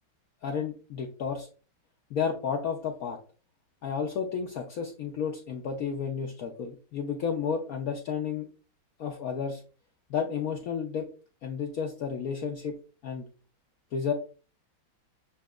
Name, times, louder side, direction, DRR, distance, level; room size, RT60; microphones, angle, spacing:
voice 1, 0.4-1.5 2.1-3.2 3.8-8.5 9.0-9.6 10.1-11.1 11.4-12.8 13.0-13.3 13.9-14.1, left 6 dB, 70° left, 2 dB, 0.9 m, -32 dB
7.0 x 2.8 x 2.3 m, 0.36 s
omnidirectional pair, 2.0 m